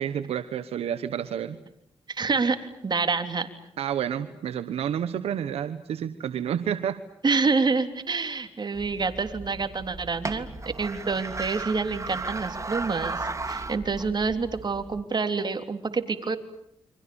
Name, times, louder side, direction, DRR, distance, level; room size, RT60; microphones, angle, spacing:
voice 1, 0.0-1.6 3.8-7.0, right 9 dB, 90° right, 11 dB, 1.2 m, -29 dB
voice 2, 2.1-3.5 7.2-16.4, right 4 dB, 45° right, 7 dB, 3.5 m, -27 dB
sound 1, 8.7-15.0, right 3 dB, 30° right, 2.8 m, -36 dB
29.5 x 25.0 x 7.1 m, 0.78 s
cardioid pair, 65°, 10 cm